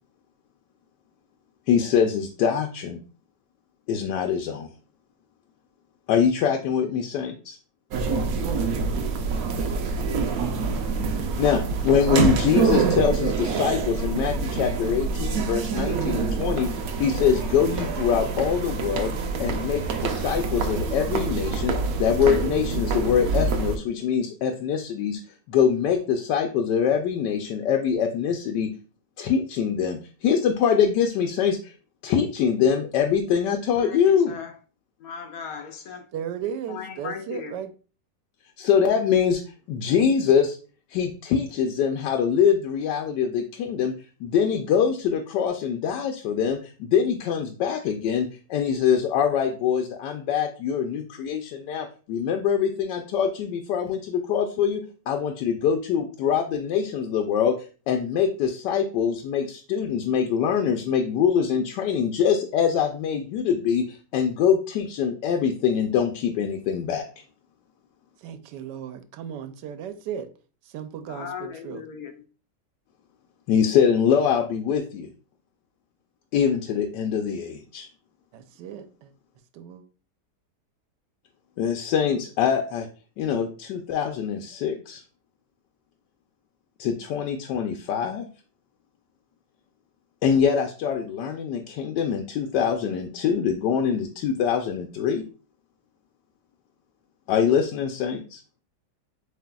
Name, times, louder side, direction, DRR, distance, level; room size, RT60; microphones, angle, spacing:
voice 1, 1.7-3.0 3.9-4.7 6.1-7.5 11.4-16.7 17.0-19.1 19.4-25.2 25.5-28.7 29.2-31.7 32.0-34.3 38.6-39.4 39.7-40.6 40.9-43.9 44.2-57.5 57.9-67.1 73.5-75.1 76.3-77.9 81.6-82.9 83.2-85.0 86.8-88.3 90.2-95.2 97.3-98.4, left 7 dB, 90° left, 5 dB, 1.2 m, -24 dB
sound 1, 7.9-23.8, right 4 dB, 70° right, 0.9 m, -26 dB
voice 2, 8.1-10.2 36.1-37.7 68.2-70.3 70.6-71.8 78.3-79.1 79.5-79.8, right 9 dB, 90° right, 10 dB, 1.2 m, -36 dB
voice 3, 33.8-34.6 35.0-36.2 36.7-37.5 71.1-72.1, left 7 dB, 70° left, 5 dB, 1.0 m, -37 dB
7.4 x 3.1 x 2.2 m, 0.37 s
omnidirectional pair, 1.8 m